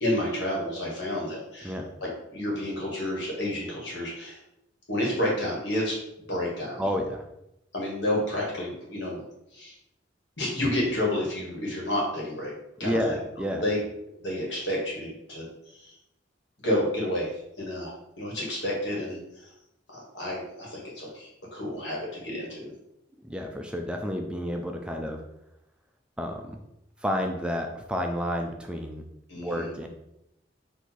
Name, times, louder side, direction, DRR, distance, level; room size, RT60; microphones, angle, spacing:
voice 1, 0.0-1.8 2.3-4.4 4.9-6.0 6.3-6.8 7.7-9.2 9.5-9.7 10.4-12.5 12.8-13.2 13.5-13.8 14.2-15.4 15.7-15.9 16.6-17.9 18.2-19.2 19.9-22.7 29.3-29.7, left 1 dB, 70° left, -3 dB, 1.5 m, -30 dB
voice 2, 6.8-7.2 12.8-13.6 23.2-25.2 26.2-26.6 27.0-29.0 29.4-29.9, equal, 5° right, 3 dB, 0.3 m, -30 dB
4.1 x 2.6 x 4.5 m, 0.85 s
head